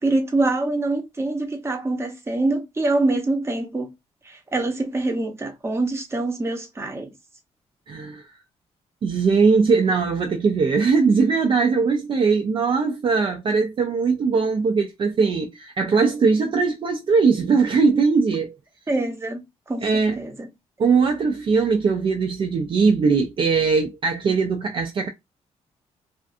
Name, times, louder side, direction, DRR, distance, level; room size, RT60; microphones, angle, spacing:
voice 1, 0.0-3.9 4.5-7.1 18.9-19.4 19.7-19.9 20.2-20.5, right 2 dB, 20° right, 0.7 m, -24 dB
voice 2, 7.9-8.2 9.0-18.6 19.8-20.2 20.8-25.1, right 4 dB, 45° right, 0.4 m, -20 dB
2.5 x 2.4 x 2.4 m
cardioid pair, 105°, 12 cm